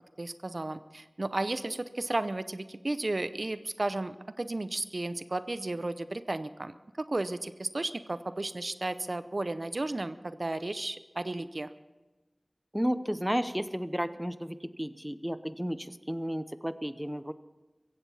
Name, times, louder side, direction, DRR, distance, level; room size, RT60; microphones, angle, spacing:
voice 1, 0.2-11.7, right 2 dB, 60° right, 13 dB, 0.6 m, -34 dB
voice 2, 12.7-17.3, equal, 10° right, 13 dB, 0.8 m, -33 dB
16.5 x 15.5 x 5.6 m, 1.2 s
wide cardioid pair, 45°, 0 cm